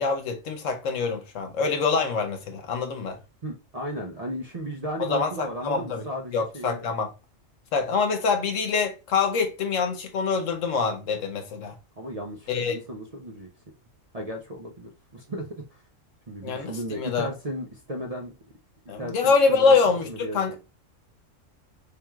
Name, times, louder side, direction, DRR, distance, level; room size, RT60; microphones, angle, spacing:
voice 1, 0.0-3.2 5.0-6.0 6.3-7.1 7.7-11.7 12.5-12.8 16.4-17.3 18.9-20.6, left 5 dB, 75° left, 1.2 m, -25 dB
voice 2, 3.4-6.9 12.0-13.5 14.1-15.8 16.3-18.3 19.0-19.8 20.1-20.5, right 1 dB, 45° right, 0.5 m, -35 dB
4.4 x 3.4 x 2.3 m
omnidirectional pair, 1.3 m